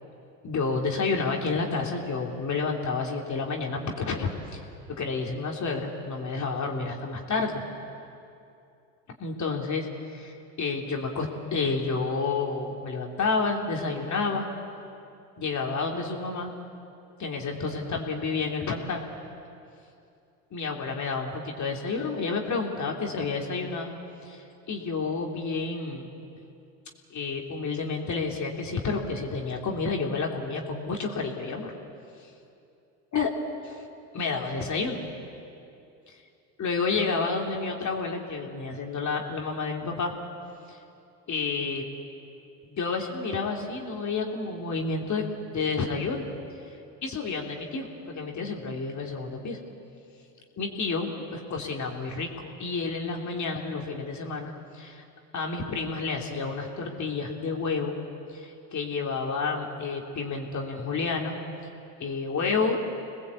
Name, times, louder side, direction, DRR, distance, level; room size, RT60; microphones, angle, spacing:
voice 1, 0.4-4.6 4.9-7.6 9.2-14.4 15.4-16.5 17.2-19.1 20.5-23.9 24.2-26.1 27.1-31.7 33.1-33.3 34.1-35.0 36.1-36.2 36.6-40.1 40.7-40.8 41.3-41.8 42.6-46.3 47.0-49.6 50.6-55.0 55.3-58.0 58.3-61.3 62.0-62.8, left 4 dB, 35° left, 1 dB, 3.1 m, -30 dB
26.5 x 20.0 x 8.5 m, 2.6 s
hypercardioid pair, 90°, 48 cm